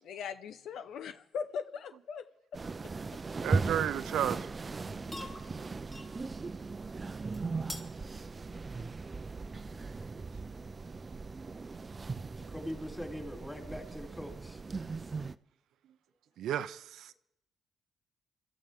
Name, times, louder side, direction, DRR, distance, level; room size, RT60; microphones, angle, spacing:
voice 1, 0.0-2.2, left 6 dB, 75° left, 0.9 m, -39 dB
sound 1, 2.5-15.3, right 4 dB, 30° right, 0.5 m, -38 dB
voice 2, 3.4-4.5 16.4-17.1, right 10 dB, 80° right, 0.6 m, -32 dB
sound 2, 4.7-11.1, left 1 dB, 25° left, 4.1 m, -51 dB
voice 3, 12.4-14.6, equal, 5° left, 3.9 m, -42 dB
25.5 x 13.5 x 3.7 m
cardioid pair, 85°, 0 cm